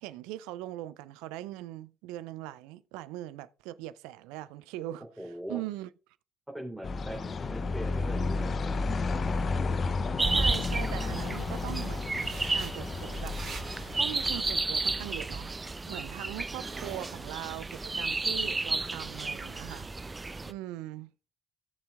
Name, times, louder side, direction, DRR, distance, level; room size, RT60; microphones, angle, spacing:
voice 1, 0.0-5.9 10.3-13.4 13.9-15.5 15.9-19.9 20.5-21.1, right 15 dB, 75° right, 0.4 m, -41 dB
voice 2, 5.2-5.6 6.5-8.8, right 1 dB, 5° right, 3.2 m, -41 dB
sound 1, 6.8-14.7, left 3 dB, 45° left, 0.6 m, -32 dB
sound 2, 10.2-20.5, right 3 dB, 25° right, 0.7 m, -32 dB
sound 3, 11.2-15.6 15.9-18.1 18.3-18.6, right 4 dB, 50° right, 2.5 m, -48 dB
17.5 x 6.9 x 2.4 m
figure-of-eight pair, 45°, 0 cm